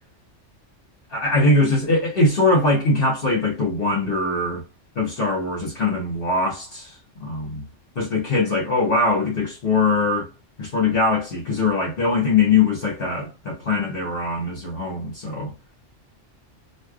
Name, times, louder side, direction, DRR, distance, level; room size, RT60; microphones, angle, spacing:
voice 1, 1.1-4.6 4.9-7.6 7.9-10.3 10.6-15.5, left 3 dB, 50° left, 1.2 m, -21 dB
3.2 x 2.6 x 2.3 m
omnidirectional pair, 1.2 m